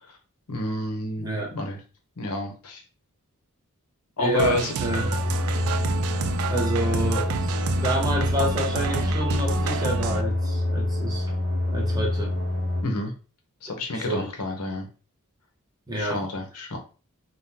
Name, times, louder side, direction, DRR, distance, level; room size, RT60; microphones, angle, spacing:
voice 1, 0.5-1.8 2.2-2.8 4.2-4.7 12.8-13.1 13.6-14.9 16.0-16.8, left 2 dB, 90° left, 3 dB, 0.8 m, -29 dB
voice 2, 1.2-1.5 4.2-5.2 6.5-7.6 7.8-11.2 11.7-12.3 13.9-14.3 15.9-16.2, right 1 dB, 20° right, 0 dB, 0.8 m, -28 dB
sound 1, 4.4-10.2, right 6 dB, 70° right, 0.3 m, -30 dB
sound 2, 4.9-12.8, left 1 dB, 45° left, 0.6 m, -26 dB
3.5 x 2.2 x 2.8 m, 0.36 s
head